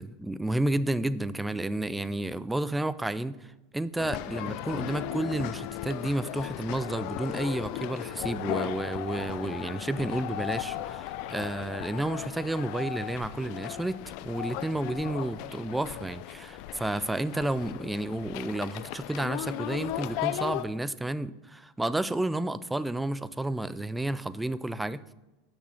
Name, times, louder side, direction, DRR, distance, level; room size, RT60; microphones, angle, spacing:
voice 1, 0.0-3.4 3.7-14.0 14.2-25.0, right 1 dB, 5° right, 16 dB, 0.3 m, -31 dB
sound 1, 4.0-20.7, left 13 dB, 55° left, 0.4 m, -36 dB
6.2 x 6.1 x 7.1 m, 1.1 s
supercardioid pair, 130°, 0 cm